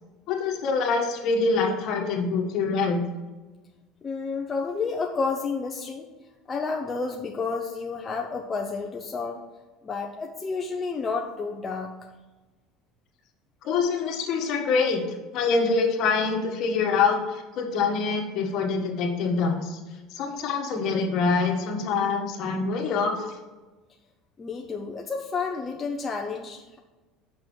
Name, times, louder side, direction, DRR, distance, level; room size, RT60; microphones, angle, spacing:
voice 1, 0.3-3.0 13.6-15.0 15.3-19.8 20.1-23.4, left 4 dB, 55° left, 2 dB, 1.7 m, -25 dB
voice 2, 4.0-6.1 6.5-9.4 9.8-11.9 24.4-26.8, left 4 dB, 20° left, 1 dB, 0.7 m, -30 dB
6.4 x 6.0 x 6.4 m, 1.2 s
cardioid pair, 130°, 0 cm